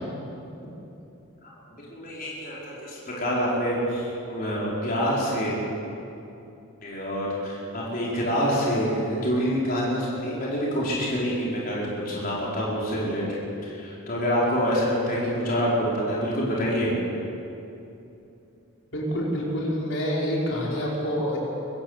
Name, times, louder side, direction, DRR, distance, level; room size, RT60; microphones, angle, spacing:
voice 1, 1.4-5.6 6.8-17.0, equal, 40° left, -6 dB, 4.8 m, -27 dB
voice 2, 18.9-21.4, equal, 60° left, -4 dB, 5.0 m, -27 dB
24.0 x 14.5 x 8.4 m, 2.8 s
head